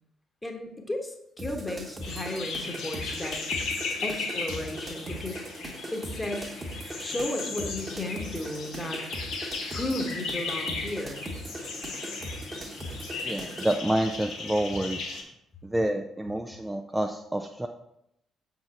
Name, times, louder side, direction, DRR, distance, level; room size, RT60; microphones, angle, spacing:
voice 1, 0.4-3.4 4.0-5.4 5.9-6.5 7.0-9.0 9.7-11.3, left 1 dB, 20° left, 3 dB, 1.3 m, -34 dB
sound 1, 1.4-13.8, right 1 dB, 30° right, 1.1 m, -39 dB
sound 2, 2.0-15.2, left 4 dB, 65° left, 1.1 m, -36 dB
voice 2, 13.2-15.1 15.6-17.7, right 1 dB, 10° right, 4 dB, 0.4 m, -28 dB
6.8 x 3.9 x 4.3 m, 0.78 s
figure-of-eight pair, 45°, 0 cm